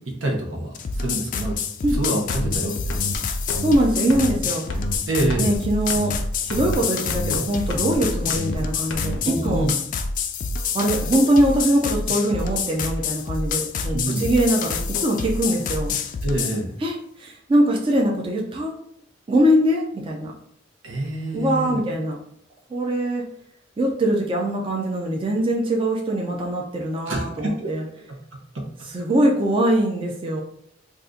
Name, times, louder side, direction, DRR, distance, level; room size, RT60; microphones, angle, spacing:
voice 1, 0.2-1.5 1.9-2.9 5.1-5.5 9.2-9.7 13.8-14.3 16.2-16.7 20.8-21.8 27.1-27.7 28.5-28.6, right 1 dB, 80° right, 0 dB, 0.8 m, -26 dB
sound 1, 0.7-16.6, left 5 dB, 45° left, 0.3 m, -27 dB
sound 2, 1.9-2.0 2.3-2.6 2.9-3.2 3.5-3.8 4.1-4.4 4.7-5.0 5.3-5.6 5.9-6.2 6.5-6.8 7.1-7.4 7.7-8.0 8.3-8.6 8.9-9.2, left 1 dB, 85° left, 0.6 m, -29 dB
voice 2, 3.6-4.6 5.4-6.1 6.4-9.7 10.7-15.9 16.8-18.7 19.3-20.3 21.3-22.2 22.7-23.2 23.8-27.8 28.9-30.4, right 1 dB, 30° right, -1 dB, 0.4 m, -22 dB
2.7 x 2.4 x 3.6 m, 0.69 s
head